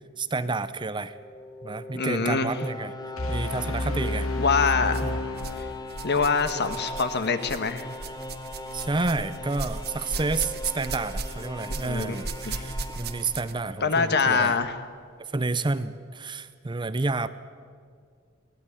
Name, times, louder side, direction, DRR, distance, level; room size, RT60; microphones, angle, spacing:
voice 1, 0.2-1.1 1.6-2.9 3.3-4.3 5.0-5.2 8.7-14.6 15.3-17.3, right 3 dB, 20° right, 13 dB, 0.6 m, -30 dB
sound 1, 1.0-14.1, left 1 dB, 20° left, 1.1 m, -40 dB
voice 2, 1.9-2.6 4.4-5.0 5.6-5.7 6.0-7.9 11.8-12.2 12.4-12.6 13.8-14.8, left 5 dB, 55° left, 10 dB, 1.4 m, -24 dB
sound 2, 3.2-6.2, left 2 dB, 70° left, 1.9 m, -30 dB
sound 3, 3.9-4.1 4.9-5.6 5.9-13.7 14.6-14.7 15.5-15.6, right 3 dB, 50° right, 1.3 m, -37 dB
23.0 x 16.5 x 9.9 m, 2.1 s
head